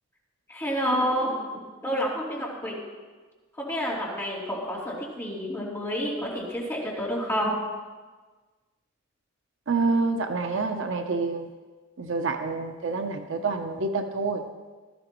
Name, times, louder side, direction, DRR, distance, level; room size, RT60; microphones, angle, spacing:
voice 1, 0.5-1.3 1.8-2.8 3.6-7.6, equal, 15° left, -7 dB, 3.0 m, -29 dB
voice 2, 9.7-11.5 12.0-14.5, right 4 dB, 60° right, 5 dB, 0.7 m, -27 dB
17.5 x 13.0 x 3.1 m, 1.4 s
head